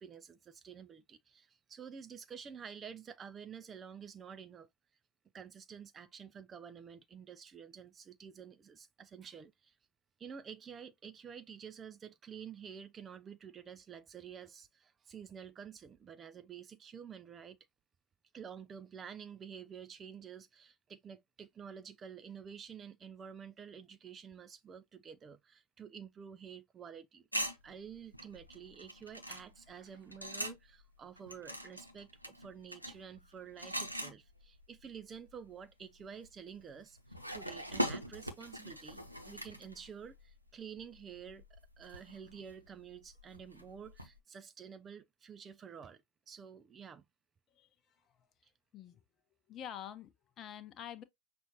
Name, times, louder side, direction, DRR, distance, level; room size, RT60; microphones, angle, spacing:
voice 1, 0.0-4.7 5.3-9.8 10.2-17.6 18.3-27.3 27.6-46.0 46.3-47.0 48.4-48.5, right 7 dB, 20° right, 0.3 m, -50 dB
sound 1, 27.3-30.8 31.2-34.8 35.1-35.3 36.0-40.3 40.8-44.2, equal, 90° right, 0.8 m, -42 dB
voice 2, 49.5-51.0, left 9 dB, 30° left, 0.8 m, -47 dB
6.1 x 2.5 x 2.9 m
figure-of-eight pair, 90°, 0 cm